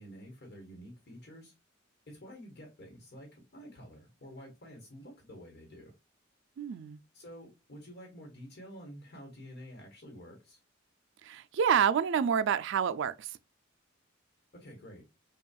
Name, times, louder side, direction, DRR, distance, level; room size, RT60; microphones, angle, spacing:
voice 1, 0.0-1.5 2.1-5.9 7.1-10.6 14.5-15.0, equal, 55° left, 1.2 m, -49 dB
voice 2, 6.6-7.0 11.2-13.4, right 7 dB, 65° right, 0.3 m, -28 dB
5.3 x 2.4 x 2.3 m
head